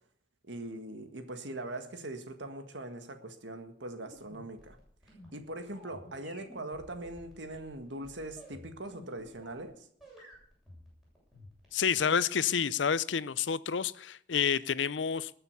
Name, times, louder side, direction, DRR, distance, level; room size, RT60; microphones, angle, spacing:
voice 1, 0.5-4.8 5.3-9.9, right 1 dB, 85° right, 1.9 m, -41 dB
sound 1, 4.0-9.7 10.0-11.8, equal, ahead, 7.5 m, -53 dB
voice 2, 11.7-15.3, left 7 dB, 90° left, 0.6 m, -29 dB
20.5 x 6.9 x 6.8 m
head